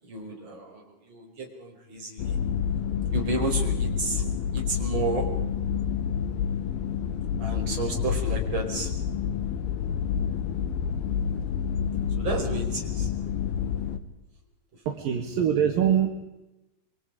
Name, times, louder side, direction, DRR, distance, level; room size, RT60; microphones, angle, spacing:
voice 1, 0.0-2.4 3.1-4.2 4.5-5.3 7.4-8.9 12.2-13.1 14.7-14.8, right 3 dB, 30° right, 0 dB, 5.4 m, -32 dB
sound 1, 2.2-14.0, left 7 dB, 85° left, 3.2 m, -28 dB
voice 2, 14.9-16.1, right 9 dB, 70° right, 2 dB, 3.4 m, -23 dB
28.0 x 24.0 x 5.1 m, 0.95 s
omnidirectional pair, 4.3 m